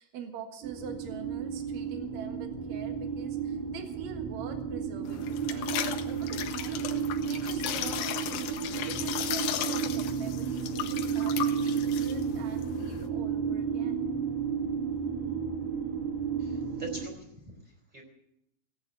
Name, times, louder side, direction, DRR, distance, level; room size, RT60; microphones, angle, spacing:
voice 1, 0.0-14.0, right 6 dB, 65° right, 5 dB, 1.7 m, -45 dB
sound 1, 0.6-17.1, right 7 dB, 85° right, 4.6 m, -32 dB
sound 2, 5.0-13.1, left 11 dB, 75° left, 3.0 m, -36 dB
voice 2, 16.4-18.0, right 1 dB, 10° right, 3 dB, 3.0 m, -44 dB
17.5 x 8.9 x 8.1 m, 0.81 s
omnidirectional pair, 5.9 m